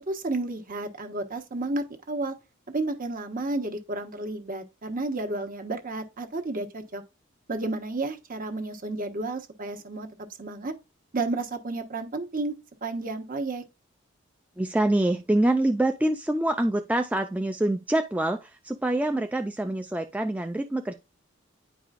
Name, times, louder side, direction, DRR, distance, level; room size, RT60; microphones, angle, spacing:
voice 1, 0.1-2.3 2.7-7.0 7.5-10.1 10.4-10.7 11.1-12.5 12.8-13.6, right 2 dB, 45° right, 1.2 m, -31 dB
voice 2, 14.6-20.9, right 1 dB, 5° right, 0.4 m, -25 dB
9.9 x 4.8 x 2.5 m
head